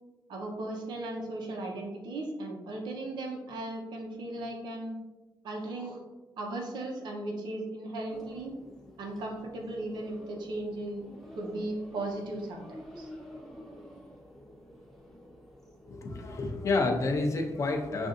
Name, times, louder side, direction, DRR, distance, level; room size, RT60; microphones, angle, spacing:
voice 1, 0.3-5.0 5.4-6.0 6.4-8.5 9.0-11.0 11.4-13.1, right 2 dB, 85° right, 0 dB, 0.9 m, -37 dB
sound 1, 8.1-17.1, equal, 5° left, 0.8 m, -50 dB
voice 2, 15.9-18.1, left 3 dB, 45° left, 3 dB, 0.6 m, -29 dB
6.5 x 2.6 x 2.6 m, 1.1 s
wide cardioid pair, 145°, 8 cm